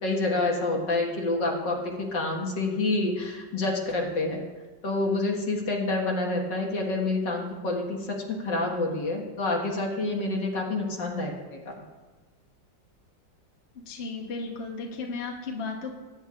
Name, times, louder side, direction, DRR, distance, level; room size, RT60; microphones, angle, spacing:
voice 1, 0.0-4.5 4.8-11.7, left 2 dB, 65° left, -1 dB, 2.4 m, -28 dB
voice 2, 13.9-15.9, left 4 dB, 40° left, 0 dB, 1.3 m, -34 dB
20.0 x 10.0 x 2.5 m, 1.2 s
omnidirectional pair, 2.0 m